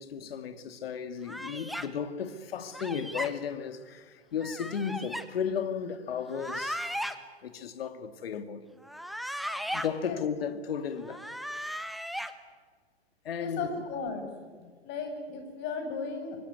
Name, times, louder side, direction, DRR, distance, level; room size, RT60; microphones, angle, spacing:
voice 1, 0.0-6.9 7.4-8.7 9.7-11.3 13.2-13.8 14.6-14.7, left 7 dB, 60° left, 2.3 m, -34 dB
sound 1, 1.3-1.9 2.7-3.3 4.4-5.2 6.3-7.1 8.8-9.9 11.0-12.3, equal, ahead, 1.3 m, -36 dB
voice 2, 13.4-14.3 14.8-16.4, left 4 dB, 30° left, 7.6 m, -35 dB
24.5 x 24.0 x 9.5 m
figure-of-eight pair, 110°, 33 cm